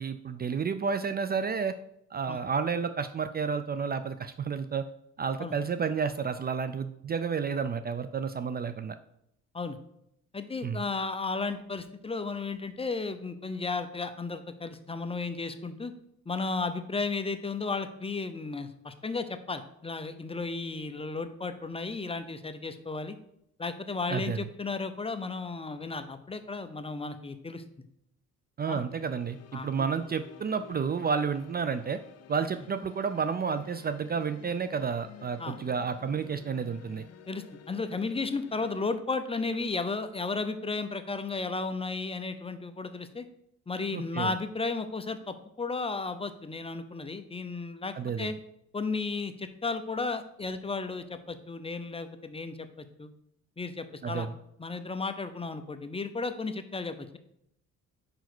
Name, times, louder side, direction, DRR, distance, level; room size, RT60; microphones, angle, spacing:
voice 1, 0.0-1.7 2.1-4.8 5.2-9.0 10.6-10.8 24.1-24.4 28.6-32.0 32.3-37.0 43.9-44.3 47.9-48.4 54.0-54.3, right 6 dB, 30° right, 10 dB, 0.4 m, -31 dB
voice 2, 10.3-15.9 16.3-23.2 23.6-27.6 28.7-28.8 29.5-29.9 35.4-35.6 37.3-43.2 43.7-48.3 48.7-53.1 53.6-54.3 54.6-57.2, left 3 dB, 20° left, 10 dB, 0.6 m, -34 dB
sound 1, 28.7-39.0, left 7 dB, 55° left, 0.7 m, -51 dB
5.1 x 4.8 x 6.0 m, 0.75 s
cardioid pair, 90°, 30 cm